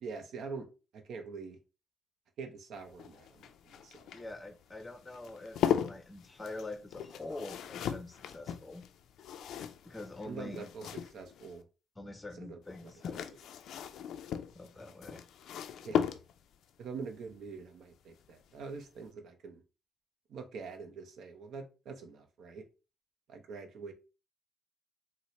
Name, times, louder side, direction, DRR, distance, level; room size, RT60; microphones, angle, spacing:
voice 1, 0.0-0.7 0.9-1.6 2.4-4.1 10.2-11.6 12.3-13.4 15.8-16.0 16.8-19.6 20.3-22.7 23.3-23.9, right 5 dB, 75° right, 0.6 m, -45 dB
sound 1, 2.8-11.6 12.7-16.6 18.2-18.6 18.8-18.9, left 9 dB, 75° left, 0.3 m, -37 dB
voice 2, 4.1-5.6 5.8-8.8 9.8-10.7 12.0-13.2 14.5-15.3, left 2 dB, 20° left, 0.5 m, -45 dB
4.1 x 2.0 x 3.0 m
cardioid pair, 90°, 0 cm